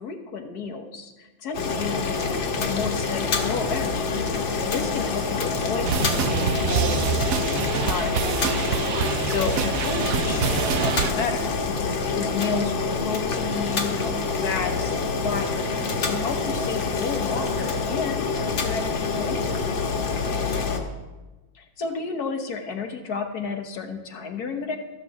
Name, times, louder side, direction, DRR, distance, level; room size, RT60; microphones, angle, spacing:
voice 1, 0.0-4.1 4.6-8.5 9.3-11.5 12.1-15.7 16.0-19.6 21.5-24.8, left 5 dB, 55° left, 5 dB, 1.5 m, -32 dB
Boiling, 1.5-20.8, left 4 dB, 80° left, 2.1 m, -26 dB
voice 2, 4.2-4.5 19.9-20.6, right 2 dB, 20° right, 2 dB, 0.6 m, -51 dB
sound 1, 5.8-11.1, right 8 dB, 70° right, 0.8 m, -26 dB
13.5 x 6.7 x 7.2 m, 1.1 s
omnidirectional pair, 2.1 m